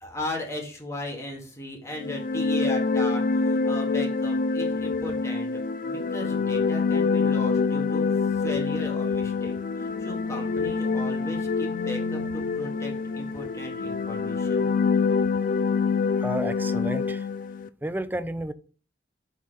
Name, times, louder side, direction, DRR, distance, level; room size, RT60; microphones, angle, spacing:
voice 1, 0.0-14.7, left 1 dB, 15° left, 2.0 m, -37 dB
sound 1, 2.0-17.7, left 4 dB, 50° left, 0.4 m, -26 dB
voice 2, 16.1-17.3 17.8-18.5, right 1 dB, 10° right, 0.4 m, -31 dB
6.1 x 4.3 x 5.6 m
head